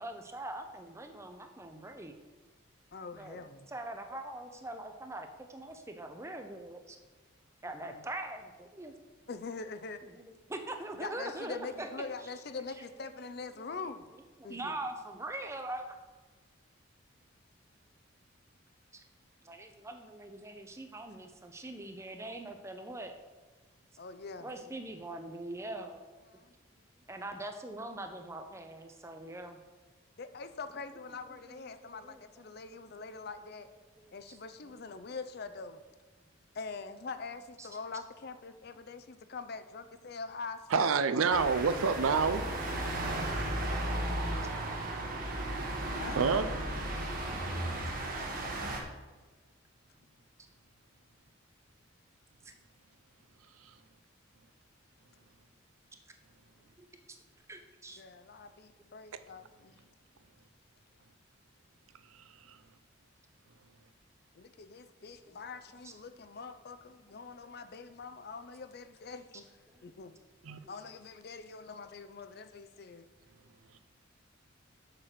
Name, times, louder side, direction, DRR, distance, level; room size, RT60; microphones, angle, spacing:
voice 1, 0.0-2.1 3.1-3.4 3.7-7.0 7.6-8.9 10.2-11.9 13.6-13.7 14.4-15.9 18.9-19.0 19.4-23.1 24.4-26.0 27.1-29.6 31.5-32.6 33.0-33.1 34.0-34.4 34.6-34.7 37.6-37.7 52.4-52.5 56.8-56.9 57.5-58.0 65.8-65.9 69.7-69.8 70.6-70.7, right 1 dB, 15° right, 6 dB, 0.7 m, -42 dB
voice 2, 2.9-3.7 7.6-8.1 9.3-10.0 10.9-14.1 14.4-14.8 24.0-24.5 26.3-26.5 30.2-33.7 34.1-35.8 36.5-40.9 45.9-46.2 58.0-59.8 64.3-69.5 69.8-70.2 70.7-73.1, left 4 dB, 50° left, 11 dB, 0.5 m, -44 dB
voice 3, 40.7-42.4 44.3-44.4 46.1-46.4 47.7-47.8 70.5-70.6, right 5 dB, 90° right, 12 dB, 0.5 m, -27 dB
sound 1, 41.3-48.8, right 1 dB, 40° right, 1.2 m, -35 dB
6.7 x 6.5 x 5.9 m, 1.3 s
head